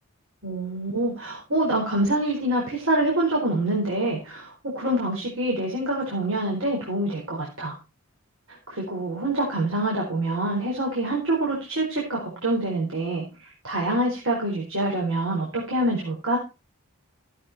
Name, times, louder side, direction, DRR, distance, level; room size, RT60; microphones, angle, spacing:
voice 1, 0.4-7.8 8.5-16.4, right 1 dB, 65° right, -3 dB, 4.4 m, -26 dB
13.5 x 8.8 x 4.3 m, 0.29 s
head